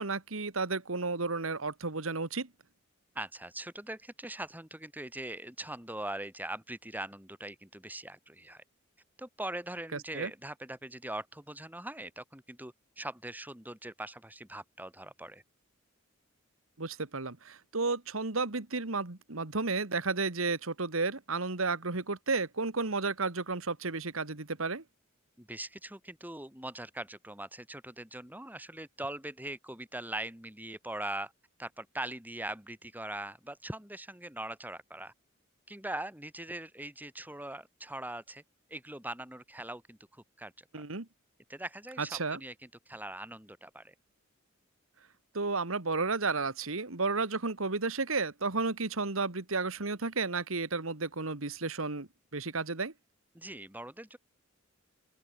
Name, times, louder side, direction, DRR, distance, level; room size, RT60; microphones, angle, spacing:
voice 1, 0.0-2.5 9.9-10.3 16.8-24.8 40.7-41.1 42.0-42.4 45.3-52.9, right 3 dB, 75° right, 1.9 m, -32 dB
voice 2, 3.1-8.6 9.2-15.4 25.4-31.3 31.6-35.1 35.7-38.4 38.7-40.7 41.5-43.9 53.3-54.2, right 1 dB, 10° right, 3.9 m, -41 dB
open air
head